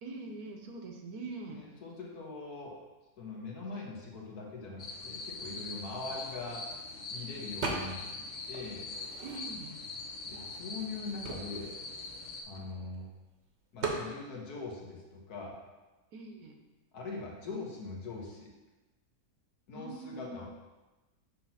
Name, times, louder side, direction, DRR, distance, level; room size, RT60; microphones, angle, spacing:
voice 1, 0.0-1.6 9.2-9.8 16.1-16.6 19.7-20.5, right 3 dB, 70° right, 2 dB, 1.2 m, -43 dB
voice 2, 1.5-2.8 3.2-6.6 7.1-8.9 10.3-11.8 12.5-13.1 13.7-15.6 16.9-18.5 19.7-20.5, left 3 dB, 70° left, -2 dB, 1.7 m, -42 dB
sound 1, 4.8-12.4, left 3 dB, 50° left, 1.1 m, -42 dB
sound 2, 7.6-8.2 8.5-9.8 10.4-10.5 10.7-13.0 13.8-14.1, right 3 dB, 50° right, 1.0 m, -38 dB
7.3 x 3.0 x 5.6 m, 1.1 s
omnidirectional pair, 1.7 m